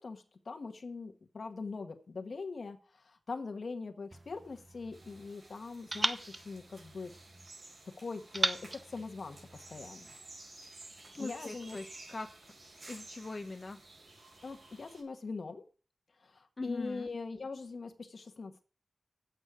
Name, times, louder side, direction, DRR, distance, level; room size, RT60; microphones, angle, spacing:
voice 1, 0.0-7.1 8.0-10.1 11.2-11.8 14.4-15.6 16.2-18.6, left 4 dB, 65° left, 6 dB, 1.3 m, -42 dB
sound 1, 4.1-5.3 5.9-7.5 8.3-9.9, right 2 dB, 30° right, 0.8 m, -38 dB
sound 2, 4.9-15.0, right 2 dB, 65° right, 4.5 m, -53 dB
voice 2, 11.2-12.3 12.9-13.8 16.6-17.1, left 3 dB, 40° left, 5 dB, 0.7 m, -41 dB
9.7 x 8.3 x 4.9 m, 0.38 s
wide cardioid pair, 95°, 0 cm